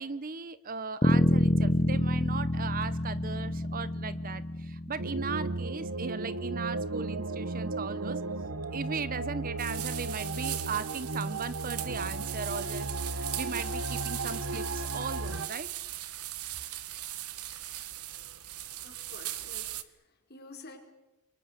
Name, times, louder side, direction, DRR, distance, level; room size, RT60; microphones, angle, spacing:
voice 1, 0.0-8.2 8.7-15.7, right 5 dB, 40° right, 16 dB, 0.8 m, -37 dB
Bass guitar, 1.0-5.4, left 1 dB, 25° left, 0.8 m, -27 dB
sound 1, 5.0-15.5, right 2 dB, 60° right, 1.2 m, -35 dB
sound 2, 9.6-19.8, right 13 dB, 85° right, 1.5 m, -39 dB
voice 2, 18.8-20.8, left 2 dB, 45° left, 3 dB, 4.9 m, -50 dB
28.5 x 24.0 x 6.7 m, 0.98 s
head